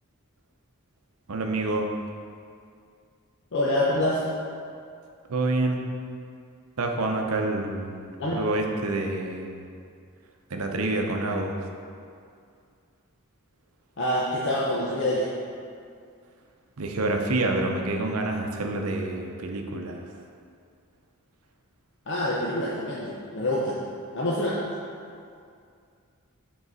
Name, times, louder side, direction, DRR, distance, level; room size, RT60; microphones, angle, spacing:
voice 1, 1.3-1.9 5.3-5.8 6.8-9.7 10.5-11.6 16.8-20.0, right 2 dB, 75° right, 3 dB, 0.7 m, -27 dB
voice 2, 3.5-4.2 8.2-8.4 14.0-15.3 22.1-23.8 24.1-24.6, left 1 dB, 55° left, -6 dB, 0.7 m, -26 dB
7.3 x 3.9 x 4.0 m, 2.3 s
head